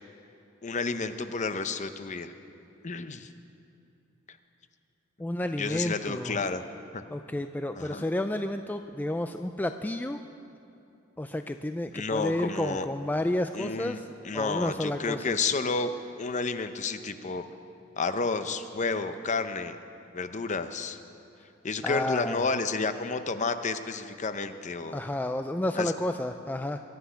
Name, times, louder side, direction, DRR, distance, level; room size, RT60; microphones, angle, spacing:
voice 1, 0.6-2.3 2.8-3.3 4.3-4.4 5.6-6.6 6.9-7.0 7.8-8.0 11.9-12.9 13.5-15.9 16.2-17.4 18.0-19.8 20.1-21.0 21.6-25.0 25.8-25.9, left 4 dB, 35° left, 10 dB, 0.7 m, -31 dB
voice 2, 5.2-6.4 7.1-10.2 11.2-14.0 14.3-15.2 21.8-22.5 24.9-26.8, left 1 dB, 10° left, 7 dB, 0.3 m, -31 dB
22.5 x 10.0 x 5.7 m, 2.8 s
head